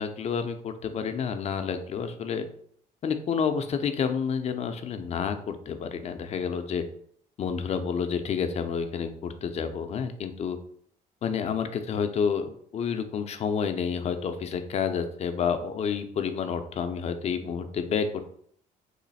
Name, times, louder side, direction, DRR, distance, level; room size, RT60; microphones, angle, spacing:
voice 1, 0.0-2.5 3.0-6.8 7.4-10.6 11.2-18.2, left 6 dB, 40° left, 8 dB, 0.4 m, -29 dB
3.1 x 2.4 x 4.0 m, 0.63 s
cardioid pair, 110°, 17 cm